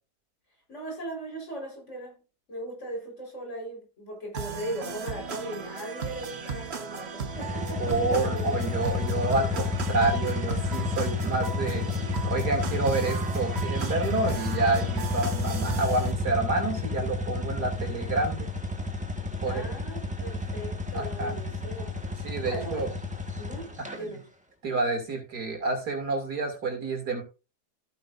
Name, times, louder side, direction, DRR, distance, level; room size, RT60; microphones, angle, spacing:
voice 1, 0.7-2.2 2.5-8.6 9.5-9.7 19.4-22.9 23.4-24.3, right 1 dB, 45° left, 5.0 m, -38 dB
sound 1, 4.3-16.1, right 6 dB, 45° right, 1.2 m, -36 dB
sound 2, 7.3-24.0, left 3 dB, 5° right, 1.6 m, -31 dB
voice 2, 7.8-18.5 19.4-19.7 20.9-21.4 22.2-22.9 23.8-24.1 24.6-27.2, right 3 dB, 80° right, 3.3 m, -29 dB
14.5 x 9.0 x 2.6 m
omnidirectional pair, 1.7 m